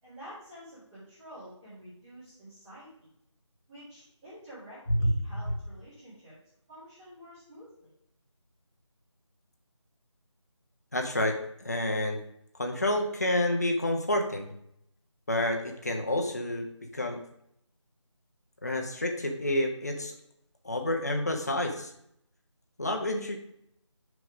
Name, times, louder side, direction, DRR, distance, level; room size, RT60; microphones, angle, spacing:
voice 1, 0.0-3.1 3.7-6.3 6.7-7.9, equal, 5° right, -18 dB, 2.1 m, -49 dB
voice 2, 10.9-12.2 12.6-14.5 15.3-16.7 16.9-17.2 18.6-20.2 20.6-21.9 22.8-23.4, left 1 dB, 35° left, 3 dB, 0.9 m, -29 dB
6.6 x 6.3 x 5.0 m, 0.73 s
figure-of-eight pair, 175°, 16 cm